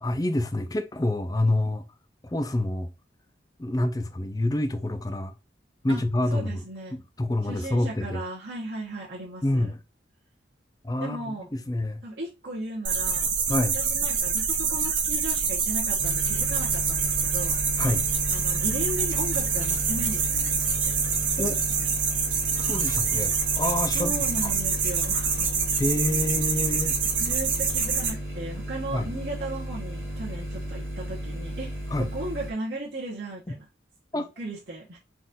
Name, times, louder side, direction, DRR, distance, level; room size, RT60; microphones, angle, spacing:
voice 1, 0.0-1.9 2.2-2.9 3.6-5.3 5.8-6.6 6.9-8.2 9.4-9.8 10.8-12.0 13.5-13.8 17.8-18.1 21.4-21.6 22.6-24.5 25.8-27.0 28.9-29.1 31.9-32.1 34.1-34.3, left 1 dB, 20° left, 0.5 m, -27 dB
voice 2, 6.3-7.0 7.4-9.7 11.0-11.5 12.0-13.3 13.7-17.6 18.3-20.6 20.8-20.9 23.9-25.6 27.2-31.7 32.0-33.6 34.4-35.0, right 1 dB, 60° right, 1.2 m, -36 dB
sound 1, 12.8-28.1, right 6 dB, 90° right, 1.3 m, -26 dB
sound 2, 16.0-32.5, equal, 10° right, 0.9 m, -34 dB
4.2 x 2.6 x 3.7 m
head